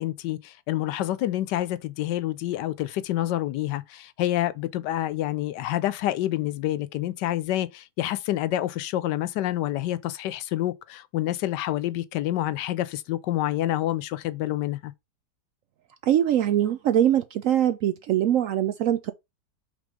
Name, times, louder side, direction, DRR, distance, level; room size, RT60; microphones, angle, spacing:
voice 1, 0.0-14.9, left 14 dB, 85° left, 1.3 m, -28 dB
voice 2, 16.0-19.1, right 11 dB, 70° right, 0.8 m, -22 dB
5.2 x 3.6 x 5.0 m
omnidirectional pair, 1.8 m